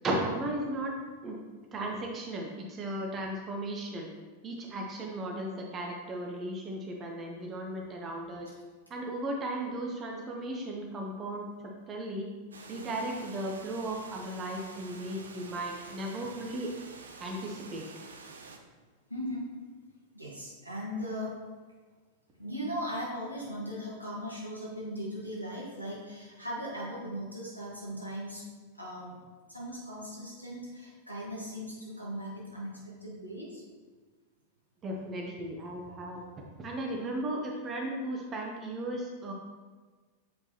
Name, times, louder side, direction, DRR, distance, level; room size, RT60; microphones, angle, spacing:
voice 1, 0.0-0.9 1.2-1.4 1.7-4.1 4.4-8.5 8.9-11.5 11.9-12.3 12.7-16.7 17.2-17.8 34.8-36.2 36.6-39.3, right 1 dB, 25° right, 0 dB, 0.8 m, -36 dB
Water, 12.5-18.6, right 4 dB, 70° right, 0.6 m, -48 dB
voice 2, 19.1-19.5 20.1-21.3 22.4-28.4 28.7-29.1 29.5-33.6, equal, 90° right, -6 dB, 1.7 m, -38 dB
7.4 x 4.5 x 2.9 m, 1.4 s
figure-of-eight pair, 90°, 0 cm